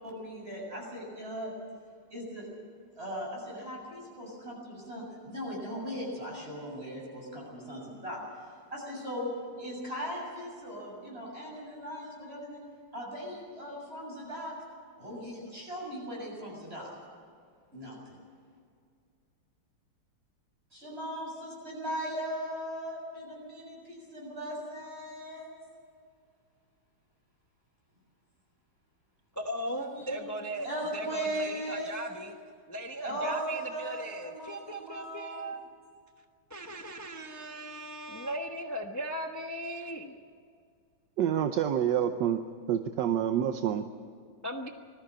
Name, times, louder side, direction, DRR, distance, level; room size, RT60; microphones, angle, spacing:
voice 1, 0.0-1.5 2.1-2.5 2.9-9.3 9.6-12.6 12.9-14.5 15.0-16.9 17.7-18.2 20.7-25.6 29.7-30.3 30.6-32.0 33.0-35.4, equal, 25° right, -3 dB, 7.4 m, -38 dB
voice 2, 29.4-32.3 32.7-35.6 36.5-40.2 44.4-44.7, right 1 dB, 25° left, 4 dB, 0.4 m, -38 dB
voice 3, 41.2-42.4 42.7-43.8, right 9 dB, 65° right, 8 dB, 1.2 m, -27 dB
20.5 x 14.0 x 8.8 m, 2.2 s
omnidirectional pair, 2.4 m